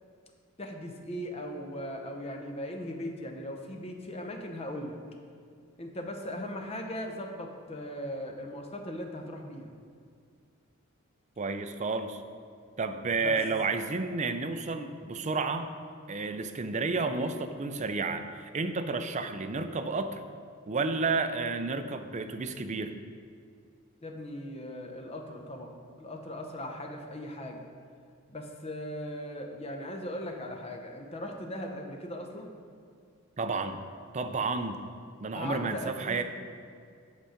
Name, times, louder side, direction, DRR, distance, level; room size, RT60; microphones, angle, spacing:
voice 1, 0.6-5.0 5.8-9.7 13.2-13.4 24.0-27.7 28.3-32.5 35.3-36.2, left 1 dB, 30° left, 3 dB, 0.8 m, -39 dB
voice 2, 11.4-12.2 12.8-15.7 16.1-20.2 20.7-22.9 33.4-33.8 34.1-34.8 35.2-36.2, right 3 dB, 35° right, 8 dB, 0.4 m, -31 dB
8.0 x 5.6 x 5.0 m, 2.2 s
head